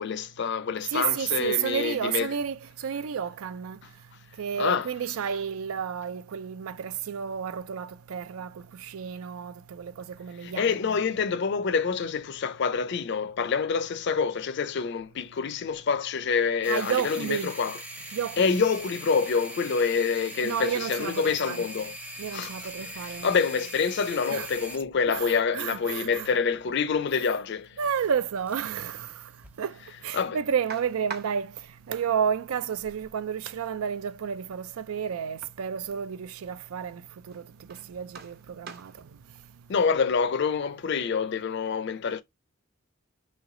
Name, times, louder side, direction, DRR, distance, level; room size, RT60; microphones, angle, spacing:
voice 1, 0.0-2.3 4.6-4.9 10.4-17.8 18.4-22.5 22.8-22.9 23.2-27.8 30.1-30.4 39.7-42.2, left 5 dB, 55° left, 0.5 m, -27 dB
voice 2, 0.9-3.8 4.4-11.0 16.7-17.5 18.1-18.6 20.4-21.7 22.2-23.4 24.3-24.5 25.0-26.3 27.8-29.1 29.6-29.8 30.0-31.5 31.9-37.0 37.3-37.4 37.7-38.9, right 7 dB, 90° right, 0.4 m, -31 dB
sound 1, 16.6-28.9 29.2-29.5 30.2-30.3, right 1 dB, 5° right, 0.6 m, -42 dB
sound 2, 30.7-40.2, right 5 dB, 45° right, 0.8 m, -48 dB
3.2 x 3.0 x 3.7 m
head